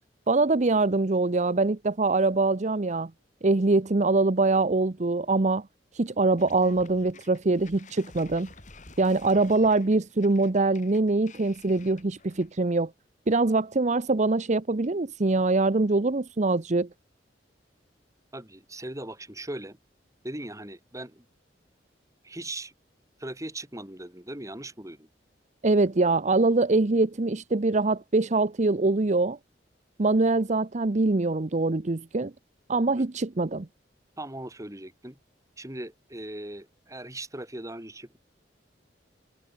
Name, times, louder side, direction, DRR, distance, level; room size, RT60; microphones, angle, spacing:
voice 1, 0.3-3.1 3.4-5.7 5.9-8.5 9.0-12.9 13.3-16.9 25.6-29.4 30.0-32.3 32.7-33.7, right 3 dB, 40° right, 0.8 m, -23 dB
sound 1, 6.4-12.6, left 3 dB, 45° left, 3.9 m, -51 dB
voice 2, 18.3-19.8 20.2-21.2 22.2-22.7 23.2-25.1 32.9-33.1 34.2-35.2 35.6-38.2, right 1 dB, 20° right, 5.0 m, -39 dB
head